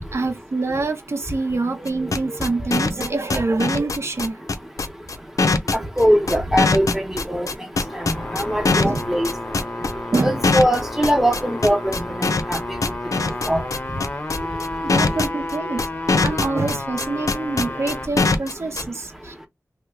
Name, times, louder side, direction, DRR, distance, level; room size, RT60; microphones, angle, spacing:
voice 1, 0.1-4.5 8.8-9.1 10.1-10.3 13.2-13.4 14.8-15.8 16.2-19.5, right 3 dB, 50° right, 0.7 m, -25 dB
sound 1, 1.9-18.8, left 3 dB, 65° left, 0.5 m, -21 dB
voice 2, 6.0-7.5 7.9-9.3 10.2-12.6 13.5-13.6, equal, 5° right, 0.9 m, -21 dB
sound 2, 7.7-18.1, left 2 dB, 30° left, 0.7 m, -31 dB
2.9 x 2.2 x 3.5 m
wide cardioid pair, 80°, 6 cm